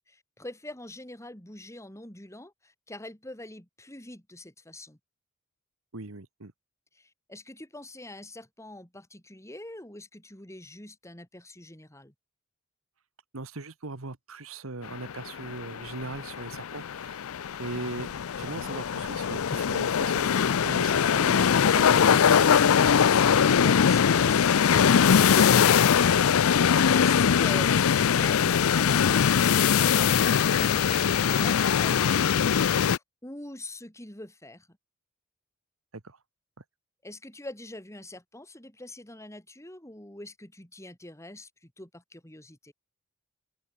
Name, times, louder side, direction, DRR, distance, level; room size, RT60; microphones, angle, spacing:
voice 1, 0.0-5.0 6.9-12.1 23.2-34.7 37.0-42.7, left 1 dB, 15° left, 4.5 m, -44 dB
voice 2, 5.9-6.5 13.3-17.2 17.6-22.7 36.0-36.2, right 3 dB, 75° right, 1.5 m, -39 dB
sound 1, 14.9-33.0, left 7 dB, 85° left, 0.5 m, -22 dB
open air
head